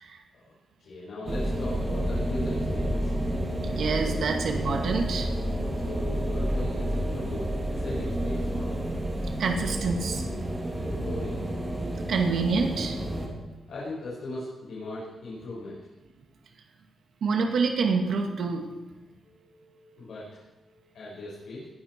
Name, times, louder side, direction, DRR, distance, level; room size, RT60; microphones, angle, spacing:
voice 1, 0.8-3.1 5.7-8.8 10.8-11.4 13.7-15.8 19.2-21.7, left 2 dB, 70° left, -7 dB, 5.3 m, -39 dB
sound 1, 1.3-13.3, right 1 dB, 20° right, 2.6 m, -30 dB
voice 2, 3.7-5.3 9.4-10.2 12.1-13.0 17.2-18.7, right 4 dB, 65° right, 3 dB, 2.1 m, -27 dB
19.5 x 12.5 x 4.5 m, 1.1 s
wide cardioid pair, 180°, 0 cm